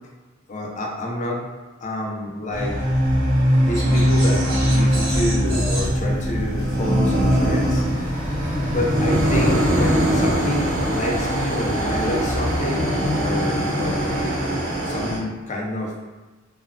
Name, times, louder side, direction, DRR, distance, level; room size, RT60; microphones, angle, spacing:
voice 1, 0.5-1.5 1.8-2.8 3.6-8.1 8.7-14.3 14.9-15.9, left 1 dB, 35° left, -1 dB, 0.4 m, -28 dB
sound 1, 2.5-15.2, equal, 70° right, 1.1 m, -21 dB
sound 2, 3.7-7.9, right 1 dB, 50° right, 0.6 m, -31 dB
sound 3, 5.8-12.6, equal, 10° right, 0.6 m, -34 dB
3.1 x 2.1 x 2.4 m, 1.2 s
head